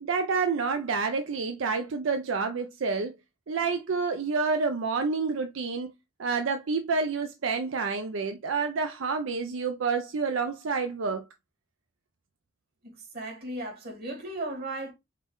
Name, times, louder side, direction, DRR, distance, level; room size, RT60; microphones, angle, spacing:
voice 1, 0.0-3.1 3.5-5.9 6.2-11.3, right 4 dB, 70° right, 0.5 m, -28 dB
voice 2, 12.8-14.9, right 1 dB, 55° right, 2.0 m, -36 dB
5.2 x 2.6 x 3.5 m
head